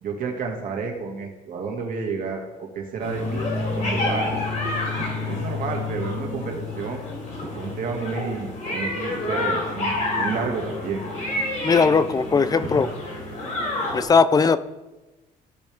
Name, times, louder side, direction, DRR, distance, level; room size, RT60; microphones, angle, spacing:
voice 1, 0.0-4.4 5.2-7.0 7.5-11.0, right 5 dB, 55° right, 1 dB, 2.1 m, -31 dB
sound 1, 3.0-14.0, left 2 dB, 45° left, 3.6 m, -28 dB
voice 2, 11.6-12.9 13.9-14.6, left 5 dB, 20° left, 14 dB, 0.4 m, -18 dB
14.5 x 5.2 x 3.5 m, 1.1 s
cardioid pair, 110°, 17 cm